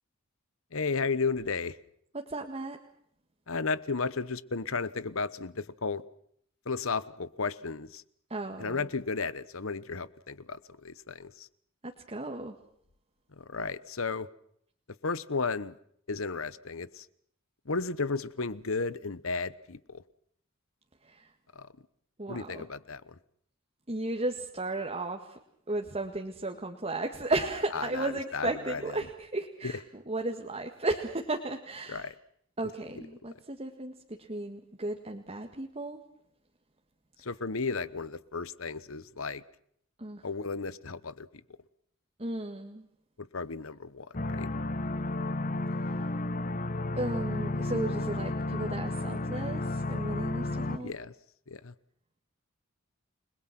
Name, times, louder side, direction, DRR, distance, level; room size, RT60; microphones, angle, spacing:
voice 1, 0.7-1.8 3.5-6.0 6.6-8.0 8.6-11.5 13.3-14.3 15.0-15.8 16.1-17.1 17.6-20.0 21.5-21.7 22.3-23.2 27.7-29.0 29.6-29.7 31.9-32.1 32.9-33.0 37.2-39.4 40.2-41.4 43.2-44.5 50.8-51.1 51.5-51.7, left 4 dB, 70° left, 17 dB, 1.1 m, -34 dB
voice 2, 2.1-2.8 8.3-8.8 11.8-12.6 21.0-21.3 22.2-22.6 23.9-25.4 25.7-32.1 32.6-36.0 40.0-40.2 42.2-42.9 45.8-46.1 46.9-50.9, right 2 dB, 30° right, 3 dB, 1.8 m, -34 dB
sound 1, 44.1-50.8, left 2 dB, 40° left, 1.1 m, -32 dB
29.5 x 21.0 x 6.0 m, 0.68 s
head